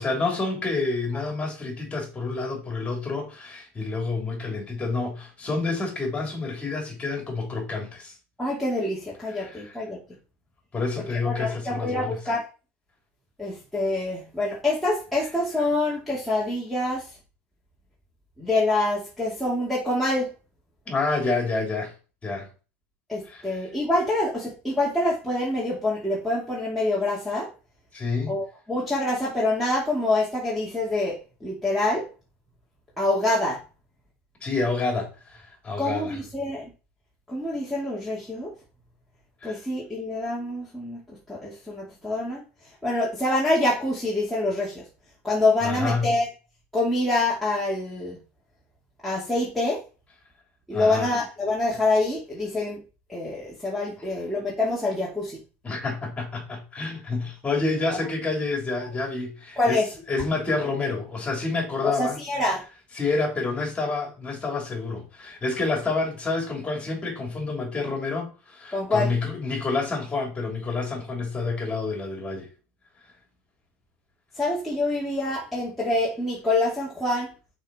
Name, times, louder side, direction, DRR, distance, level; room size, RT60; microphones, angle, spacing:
voice 1, 0.0-8.2 9.3-9.8 10.7-12.2 20.9-21.9 22.2-22.5 23.3-23.6 27.9-28.3 34.4-36.2 39.4-39.6 45.6-46.1 50.7-51.1 55.6-59.8 60.1-62.2 62.9-72.5, left 3 dB, 15° left, 3.4 m, -28 dB
voice 2, 8.4-10.0 11.2-12.4 13.4-17.1 18.4-20.3 23.1-27.5 28.3-32.1 33.0-33.6 35.8-36.7 37.3-38.5 39.4-42.4 42.8-44.9 45.2-46.3 46.7-48.2 49.0-49.8 50.7-52.8 53.1-55.4 57.9-58.0 59.6-59.9 61.8-62.6 68.7-69.1 74.4-77.3, left 2 dB, ahead, 2.4 m, -26 dB
6.2 x 5.2 x 4.2 m
supercardioid pair, 120°, 7 cm